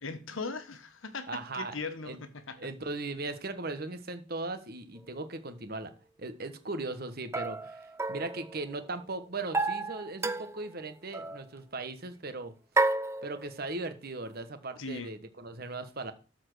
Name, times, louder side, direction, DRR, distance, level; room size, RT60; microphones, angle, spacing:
voice 1, 0.0-2.6 14.8-15.1, left 4 dB, 80° left, 1.3 m, -39 dB
voice 2, 1.3-1.8 2.0-2.2 2.6-5.9 6.2-12.5 13.2-16.1, right 2 dB, 50° right, 1.3 m, -38 dB
sound 1, 5.0-5.1 7.3-9.0 9.5-10.7 11.1-11.5 12.8-13.8, right 3 dB, 15° right, 0.4 m, -32 dB
13.0 x 4.5 x 6.1 m
head